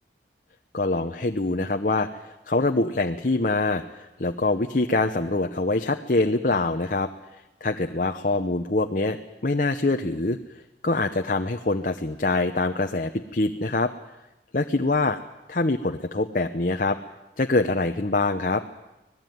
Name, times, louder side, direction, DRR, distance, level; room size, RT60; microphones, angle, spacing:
voice 1, 0.7-2.1 2.5-7.1 7.6-9.2 9.4-10.4 10.8-13.9 14.5-15.2 15.5-17.0 17.4-18.6, left 2 dB, 50° left, 5 dB, 0.9 m, -24 dB
25.5 x 18.5 x 9.4 m, 1.0 s
head